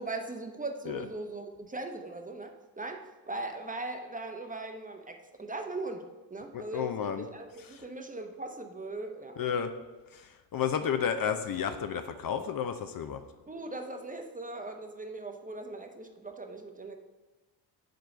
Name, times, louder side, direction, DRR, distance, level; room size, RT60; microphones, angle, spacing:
voice 1, 0.0-6.0 6.3-9.4 13.5-17.0, right 2 dB, 20° right, 5 dB, 0.8 m, -39 dB
voice 2, 6.5-7.2 7.7-7.8 9.4-9.7 10.1-13.2, left 7 dB, 50° left, 8 dB, 0.6 m, -32 dB
5.2 x 4.5 x 6.2 m, 1.2 s
cardioid pair, 70°, 46 cm